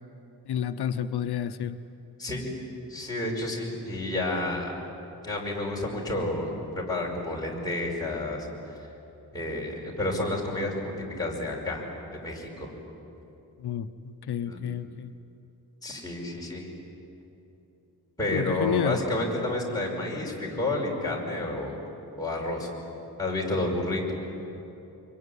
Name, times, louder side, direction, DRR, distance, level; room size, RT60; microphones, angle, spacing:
voice 1, 0.5-1.8 13.6-15.1 18.3-19.0, left 9 dB, 90° left, 9 dB, 0.9 m, -30 dB
voice 2, 2.2-2.5 2.9-4.8 5.2-8.5 8.8-8.9 9.3-11.8 12.1-12.7 14.5-14.6 15.8-16.7 18.2-21.8 22.2-22.7 23.2-24.1, left 2 dB, 10° left, -3 dB, 5.3 m, -30 dB
25.5 x 23.0 x 9.9 m, 3.0 s
wide cardioid pair, 170°, 38 cm